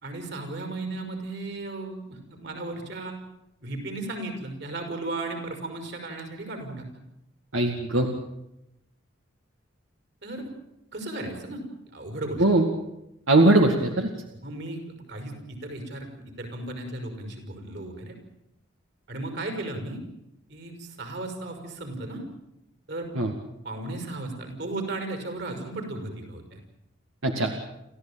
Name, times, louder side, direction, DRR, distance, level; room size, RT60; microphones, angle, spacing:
voice 1, 0.0-3.2 3.6-6.9 10.2-10.5 10.9-12.4 14.4-14.8 15.1-16.1 16.4-18.2 19.1-20.0 20.5-22.2 22.9-23.1 23.6-26.6, right 2 dB, 55° right, 5 dB, 5.6 m, -35 dB
voice 2, 7.5-8.1 12.4-12.7 13.3-14.1 23.2-23.3 27.2-27.5, right 2 dB, 85° right, 4 dB, 2.2 m, -20 dB
29.0 x 15.0 x 8.9 m, 0.85 s
head